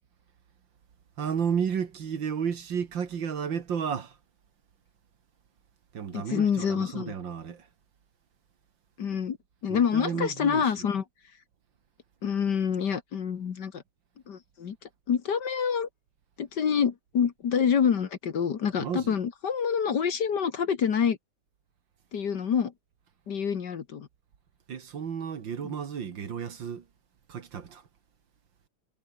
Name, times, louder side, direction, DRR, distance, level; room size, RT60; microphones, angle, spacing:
voice 1, 1.2-4.2 5.9-7.7 9.7-10.7 18.8-19.2 24.7-26.9 27.3-27.9, right 7 dB, 60° right, 2.3 m, -32 dB
voice 2, 6.1-7.1 9.0-9.4 9.6-11.0 12.2-13.8 14.3-14.8 15.1-15.9 16.4-21.2 22.1-22.7 23.3-24.1 25.6-25.7, left 7 dB, 50° left, 1.9 m, -27 dB
omnidirectional pair, 2.4 m